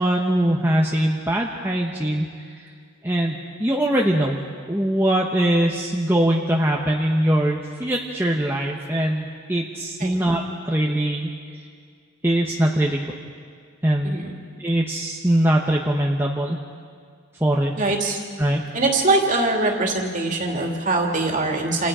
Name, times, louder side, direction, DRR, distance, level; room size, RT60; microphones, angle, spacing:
voice 1, 0.0-2.2 3.0-4.4 4.7-11.3 12.2-13.0 13.8-14.2 14.6-16.6 17.4-17.7 18.4-18.6, right 1 dB, 10° right, -2 dB, 1.2 m, -22 dB
voice 2, 17.8-18.2 18.7-21.9, right 2 dB, 35° right, 1 dB, 2.9 m, -22 dB
29.0 x 28.0 x 5.0 m, 2.1 s
head